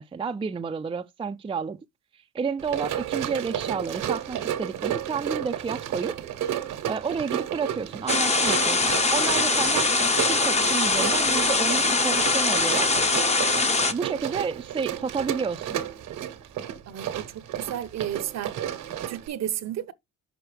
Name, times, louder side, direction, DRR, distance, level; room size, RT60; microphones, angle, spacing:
voice 1, 0.0-1.8 2.3-6.2 6.9-9.9 10.3-12.9 13.8-15.8, right 5 dB, 20° right, 0.4 m, -30 dB
Run, 2.6-19.3, right 10 dB, 85° right, 1.2 m, -32 dB
sound 1, 8.1-13.9, left 3 dB, 20° left, 0.8 m, -22 dB
voice 2, 16.9-17.2 17.6-18.5 19.1-19.9, right 10 dB, 60° right, 0.8 m, -32 dB
6.2 x 5.6 x 3.2 m
cardioid pair, 90°, 30 cm